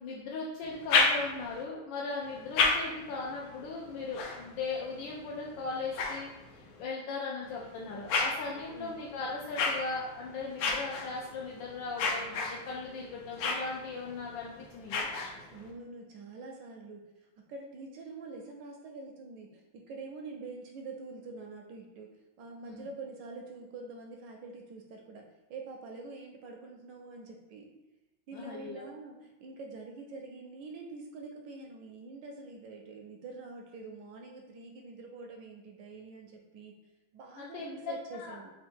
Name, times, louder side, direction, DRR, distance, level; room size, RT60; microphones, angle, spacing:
voice 1, 0.0-15.1 22.6-22.9 28.3-28.9 37.4-37.7 38.1-38.4, left 4 dB, 75° left, -4 dB, 1.2 m, -38 dB
sound 1, 0.6-1.6 2.2-6.8 7.4-15.7, left 4 dB, 90° left, 1.4 m, -34 dB
voice 2, 8.6-9.0 15.5-17.1 17.4-22.1 22.4-27.7 28.3-36.7 37.1-38.5, right 3 dB, 75° right, 2 dB, 1.1 m, -45 dB
3.8 x 2.3 x 4.3 m, 1.0 s
omnidirectional pair, 2.2 m